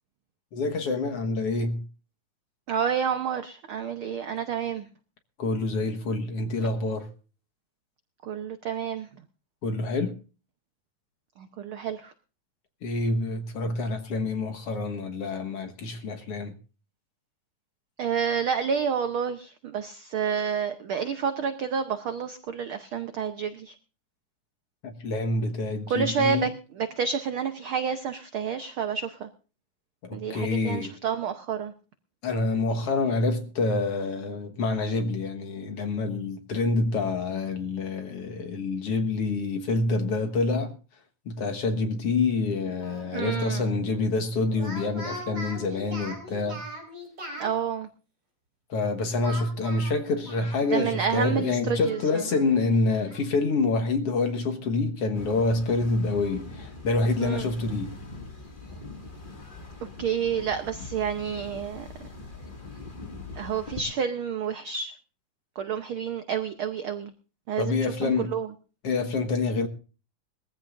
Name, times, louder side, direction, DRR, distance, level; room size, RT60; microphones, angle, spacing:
voice 1, 0.5-1.8 5.4-7.1 9.6-10.2 12.8-16.5 24.8-26.5 30.0-30.9 32.2-40.7 41.3-46.6 48.7-57.9 67.6-68.3 68.8-69.7, left 3 dB, 55° left, 2.1 m, -27 dB
voice 2, 2.7-4.9 8.2-9.1 11.4-12.1 18.0-23.7 25.9-26.5 26.8-29.3 30.1-31.7 43.1-43.7 47.4-47.9 50.7-52.2 57.2-57.5 60.0-61.9 63.4-64.9 65.6-67.1 67.5-68.5, right 7 dB, 85° right, 1.1 m, -29 dB
Speech, 42.8-43.4 44.5-47.5 49.2-51.0 51.3-51.4 51.8-53.2, right 1 dB, 30° right, 4.9 m, -41 dB
sound 1, 55.1-63.8, left 3 dB, 20° left, 1.7 m, -42 dB
22.0 x 15.0 x 2.5 m
omnidirectional pair, 3.5 m